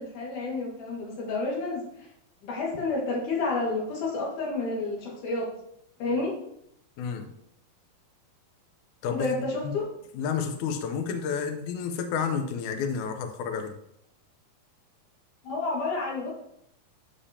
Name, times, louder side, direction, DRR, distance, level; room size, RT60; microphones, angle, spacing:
voice 1, 0.0-2.1 2.4-5.5 6.0-6.3 9.1-9.9 15.4-16.3, left 3 dB, 60° left, -3 dB, 3.1 m, -30 dB
voice 2, 7.0-7.3 9.0-9.3 9.6-9.7 10.1-13.7, left 6 dB, 80° left, 6 dB, 1.8 m, -30 dB
10.0 x 5.1 x 2.8 m, 0.76 s
omnidirectional pair, 4.4 m